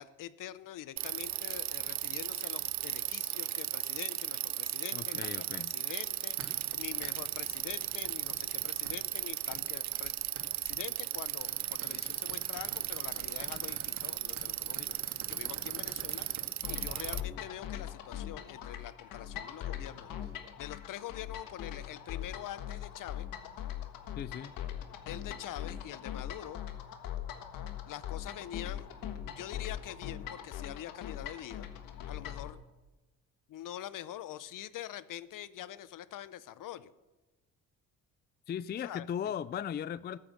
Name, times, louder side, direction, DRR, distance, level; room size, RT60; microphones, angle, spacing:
voice 1, 0.0-10.1 10.6-20.3 20.6-23.3 25.1-26.6 27.9-28.9 29.3-31.7 32.1-32.6 33.5-36.9 38.8-39.1, left 12 dB, 65° left, 16 dB, 0.8 m, -45 dB
Bicycle, 1.0-17.2, right 13 dB, 55° right, 0.5 m, -36 dB
voice 2, 4.9-5.7 24.2-24.5 38.5-40.2, left 9 dB, 30° left, 17 dB, 0.4 m, -37 dB
sound 1, 6.0-16.5, right 5 dB, 75° right, 2.5 m, -51 dB
sound 2, 16.6-32.5, left 10 dB, 80° left, 1.5 m, -41 dB
14.0 x 8.9 x 7.4 m, 1.1 s
cardioid pair, 85°, 34 cm